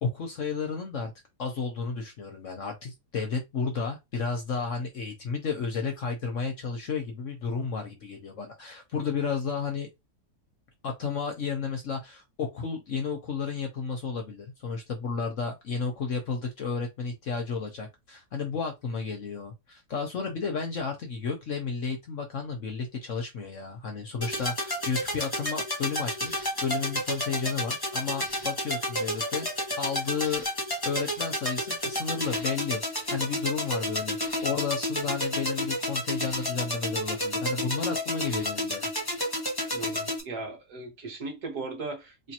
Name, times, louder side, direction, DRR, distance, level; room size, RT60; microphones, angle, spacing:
voice 1, 0.0-1.1 1.4-9.9 10.8-29.5 29.8-30.5 30.8-38.9, left 5 dB, 55° left, 1.0 m, -32 dB
sound 1, 24.2-40.2, left 1 dB, 15° left, 0.9 m, -31 dB
voice 2, 39.7-42.3, right 3 dB, 60° right, 1.7 m, -37 dB
4.3 x 2.7 x 2.9 m
omnidirectional pair, 1.9 m